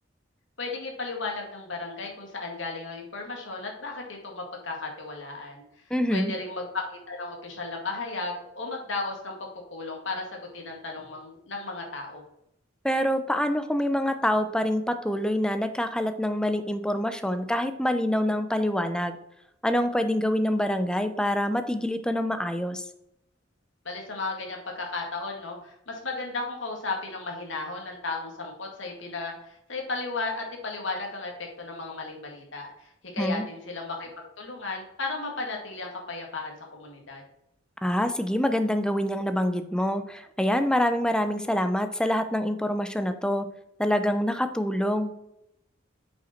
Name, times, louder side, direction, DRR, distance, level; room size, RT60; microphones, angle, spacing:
voice 1, 0.6-5.6 6.1-12.2 23.8-37.2, left 3 dB, 75° left, 1 dB, 2.1 m, -35 dB
voice 2, 5.9-6.3 12.8-19.2 19.6-22.8 33.2-33.4 37.8-43.5 43.8-45.1, equal, 5° left, 9 dB, 0.6 m, -26 dB
8.2 x 5.3 x 4.4 m, 0.81 s
head